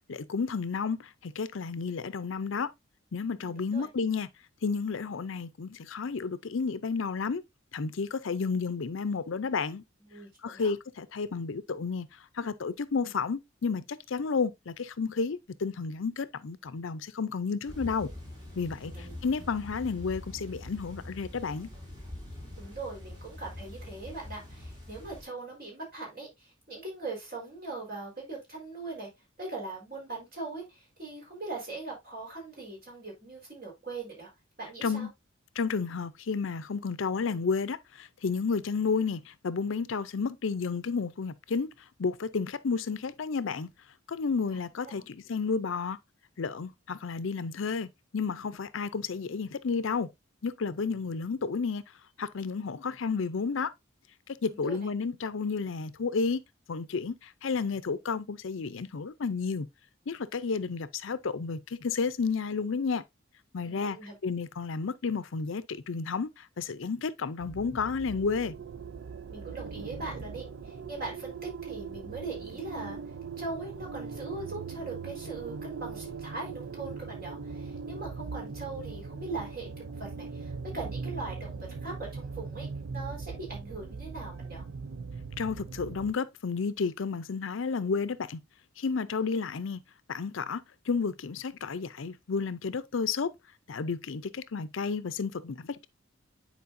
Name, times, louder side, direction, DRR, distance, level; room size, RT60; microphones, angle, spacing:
voice 1, 0.1-2.7 3.1-4.3 4.6-7.4 7.7-9.8 10.4-12.1 12.3-18.1 18.6-21.7 34.8-35.1 35.6-41.7 42.0-43.7 44.1-46.0 46.4-50.1 50.4-51.8 52.2-53.7 54.3-56.4 56.7-59.7 60.1-63.0 63.5-64.0 64.2-68.5 85.4-88.4 88.8-89.8 90.1-93.3 93.7-95.9, left 5 dB, 70° left, 0.5 m, -31 dB
voice 2, 3.3-3.9 10.1-10.7 18.8-19.1 22.6-29.1 29.4-34.3 34.6-35.1 44.5-45.1 54.4-54.9 63.6-64.2 69.3-73.0 73.4-82.7 82.9-84.6, right 3 dB, 45° right, 4.2 m, -41 dB
sound 1, 17.7-25.2, left 1 dB, 20° right, 2.8 m, -44 dB
sound 2, 67.4-86.1, right 5 dB, 70° right, 0.5 m, -40 dB
9.5 x 4.5 x 2.6 m
head